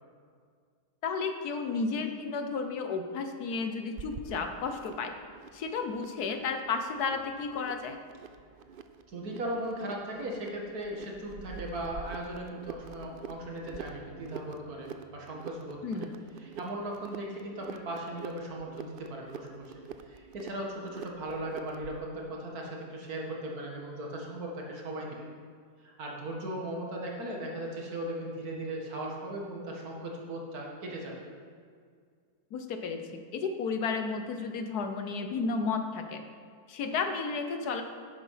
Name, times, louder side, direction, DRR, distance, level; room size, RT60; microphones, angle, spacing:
voice 1, 1.0-5.1 5.5-8.0 15.8-16.2 32.5-36.3 36.7-37.8, left 4 dB, 75° left, 6 dB, 1.5 m, -33 dB
sound 1, 4.0-22.0, right 6 dB, 85° right, 0.4 m, -47 dB
voice 2, 9.1-15.8 16.4-19.7 20.1-25.3 25.8-31.3, right 1 dB, 65° right, -1 dB, 2.3 m, -38 dB
10.5 x 9.6 x 5.7 m, 2.1 s
omnidirectional pair, 1.7 m